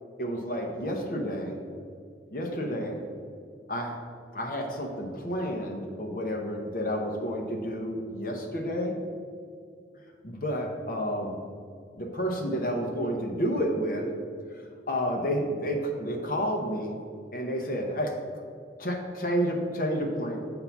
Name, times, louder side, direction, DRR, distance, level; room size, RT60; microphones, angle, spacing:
voice 1, 0.2-1.6 2.3-3.0 3.7-4.0 4.3-8.9 10.2-11.3 12.0-14.1 14.9-17.0 17.3-18.1 18.8-20.4, equal, 50° left, 1 dB, 0.8 m, -30 dB
6.9 x 3.8 x 5.8 m, 2.2 s
head